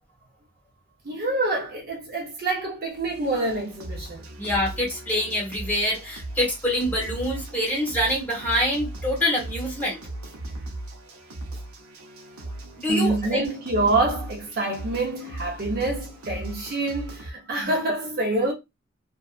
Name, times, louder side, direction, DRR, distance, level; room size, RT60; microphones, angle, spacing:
voice 1, 1.0-4.3 12.9-18.5, right 2 dB, 45° right, 0.7 m, -26 dB
sound 1, 2.9-17.3, right 1 dB, 80° right, 0.7 m, -38 dB
voice 2, 4.4-10.0 12.8-13.4 17.6-17.7, left 1 dB, 10° left, 1.1 m, -25 dB
2.7 x 2.3 x 2.4 m
head